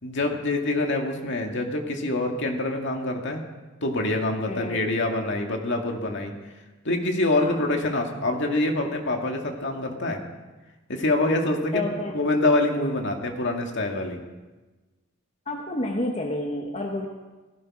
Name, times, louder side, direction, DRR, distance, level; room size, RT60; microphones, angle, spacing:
voice 1, 0.0-3.4 3.8-6.3 6.8-10.2 10.9-11.8 12.1-14.2, left 2 dB, 60° left, 2 dB, 2.1 m, -25 dB
voice 2, 4.5-4.9 7.3-7.6 11.7-12.2 15.5-17.1, left 1 dB, 30° left, 1 dB, 1.3 m, -30 dB
17.0 x 16.0 x 4.9 m, 1.2 s
head